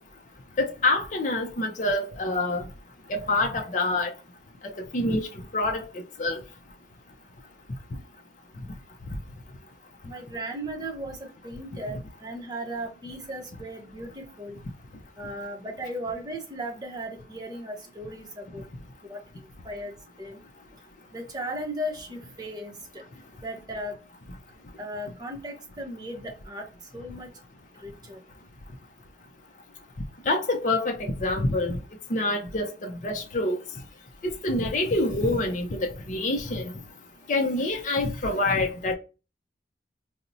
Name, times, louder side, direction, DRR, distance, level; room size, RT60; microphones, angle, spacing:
voice 1, 0.6-2.7 3.1-4.1 4.8-5.3 5.5-5.8 6.2-6.4 30.3-31.8 32.1-33.6 34.2-36.7 37.3-38.9, left 2 dB, 45° left, 0.5 m, -26 dB
voice 2, 10.0-14.6 15.2-18.7 19.0-20.4 21.1-23.0 23.4-24.0 24.8-26.7 26.9-27.3 27.8-28.2, right 1 dB, 20° right, 0.7 m, -36 dB
4.1 x 2.0 x 2.6 m
head